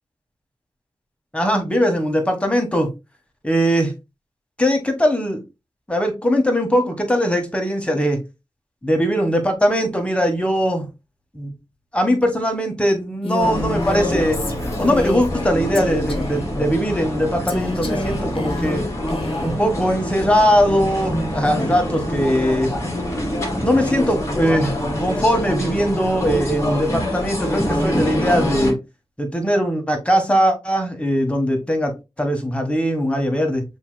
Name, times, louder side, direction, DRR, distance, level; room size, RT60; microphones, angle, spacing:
voice 1, 1.3-2.9 3.4-3.9 4.6-5.4 5.9-8.2 8.8-10.9 11.3-11.5 11.9-14.4 14.8-18.8 19.4-22.7 23.6-28.8 29.2-31.9 32.2-33.6, equal, 10° left, 1.6 m, -20 dB
Female speech woman speaking, 13.2-15.5 15.7-16.5 17.5-19.6, left 2 dB, 60° left, 1.0 m, -28 dB
sound 1, 13.4-28.7, equal, 30° left, 2.2 m, -25 dB
6.8 x 3.1 x 2.3 m
cardioid pair, 55°, 10 cm